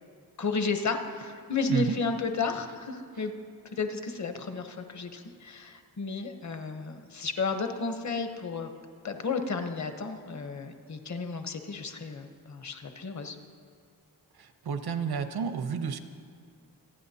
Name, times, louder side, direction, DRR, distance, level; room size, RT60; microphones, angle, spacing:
voice 1, 0.4-3.3 3.7-8.7 9.0-13.4, left 4 dB, 50° left, 6 dB, 0.9 m, -32 dB
voice 2, 14.4-16.0, right 6 dB, 85° right, 9 dB, 0.8 m, -31 dB
27.0 x 9.4 x 2.8 m, 2.3 s
wide cardioid pair, 175°, 37 cm